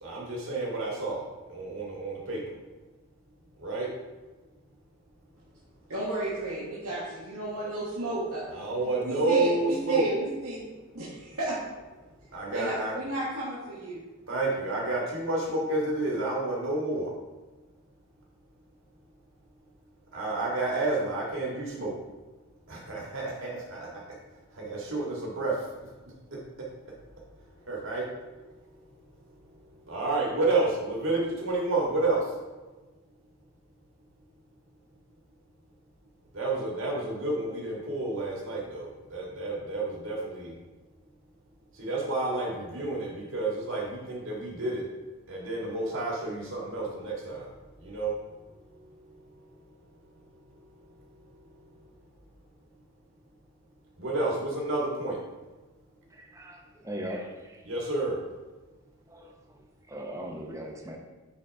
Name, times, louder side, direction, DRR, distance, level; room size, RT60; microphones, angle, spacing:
voice 1, 0.0-1.2 1.5-2.4 3.6-3.9 7.6-7.7 8.5-10.0 12.3-12.9 14.3-17.1 20.1-21.9 22.7-24.0 24.6-25.5 27.7-28.1 29.9-32.2 36.3-40.5 41.8-44.8 45.3-47.5 47.8-48.1 54.0-55.2 57.7-58.2, right 2 dB, 60° right, -3 dB, 1.8 m, -30 dB
voice 2, 5.9-10.6 10.9-11.6 12.5-14.0, right 1 dB, 85° right, -7 dB, 1.4 m, -33 dB
voice 3, 56.1-58.0 59.1-61.0, equal, 15° right, 1 dB, 0.8 m, -40 dB
9.2 x 4.0 x 3.5 m, 1.2 s
head